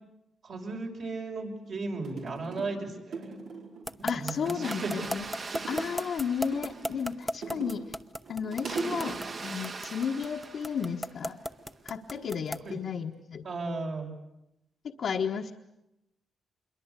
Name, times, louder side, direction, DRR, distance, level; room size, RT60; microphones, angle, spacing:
voice 1, 0.4-3.4 4.1-4.9 12.6-12.8 13.4-14.1, right 3 dB, 60° right, 2 dB, 6.0 m, -35 dB
sound 1, 1.6-1.7 2.0-2.8 3.1-3.9 4.4-5.2 5.5-6.1 6.5-7.9 8.2-9.6 11.2-11.6 12.1-13.2 13.5-14.0, right 4 dB, 80° right, 4.9 m, -40 dB
sound 2, 3.9-12.7, equal, ahead, 1.0 m, -34 dB
voice 2, 4.0-5.3 5.7-7.8 8.3-11.4 11.8-13.5 14.8-15.5, left 6 dB, 65° left, 1 dB, 1.4 m, -33 dB
Water, 4.5-7.3 8.5-11.3, right 4 dB, 45° right, 1.8 m, -42 dB
27.0 x 22.5 x 8.3 m, 0.87 s
cardioid pair, 95°, 0 cm